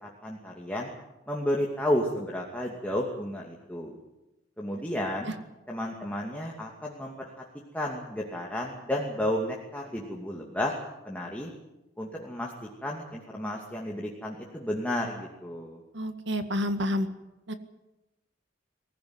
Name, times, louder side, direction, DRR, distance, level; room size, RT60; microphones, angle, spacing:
voice 1, 0.0-0.9 1.3-4.0 4.6-5.3 5.7-7.4 7.7-10.7 11.0-11.5 12.0-15.8, left 1 dB, 10° left, -2 dB, 2.5 m, -32 dB
voice 2, 15.9-17.1 17.5-17.6, left 1 dB, 65° right, 8 dB, 2.0 m, -29 dB
23.0 x 15.5 x 9.7 m, 0.99 s
head